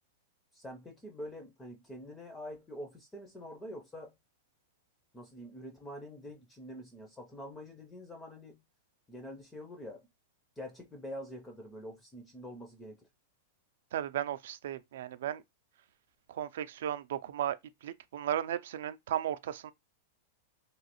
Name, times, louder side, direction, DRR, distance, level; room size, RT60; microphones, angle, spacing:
voice 1, 0.5-4.1 5.1-8.6 9.1-10.1 10.6-13.0, equal, 10° left, 0.4 m, -45 dB
voice 2, 13.9-15.4 16.3-17.6 17.8-19.7, right 10 dB, 65° right, 0.4 m, -35 dB
3.0 x 2.7 x 2.9 m
supercardioid pair, 170°, 0 cm